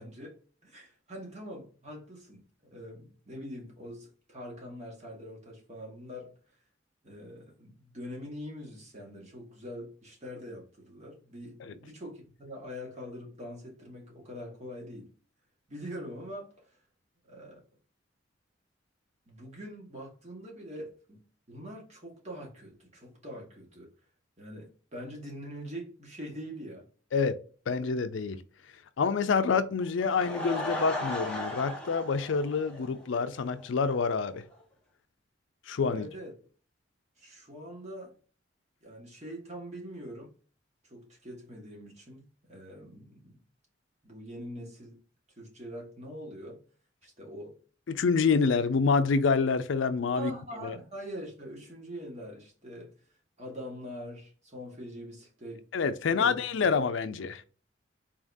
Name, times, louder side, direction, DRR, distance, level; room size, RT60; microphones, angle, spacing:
voice 1, 0.0-2.4 2.7-6.3 7.0-15.1 15.7-16.7 17.3-17.6 19.3-21.2 21.5-23.9 24.4-26.8 35.9-36.3 37.2-38.2 38.8-40.3 40.8-43.4 44.0-45.0 45.4-46.6 47.0-47.6 50.1-52.9 53.4-55.6 56.2-56.3, equal, 35° right, 1.6 m, -43 dB
voice 2, 27.7-28.4 29.0-34.4 35.7-36.1 47.9-50.3 50.6-50.8 55.7-57.4, left 5 dB, 75° left, 0.4 m, -27 dB
Laughter / Crowd, 29.8-33.3 33.6-33.7 34.2-34.3 34.5-34.6, left 1 dB, 5° left, 1.1 m, -36 dB
3.9 x 3.6 x 2.6 m
head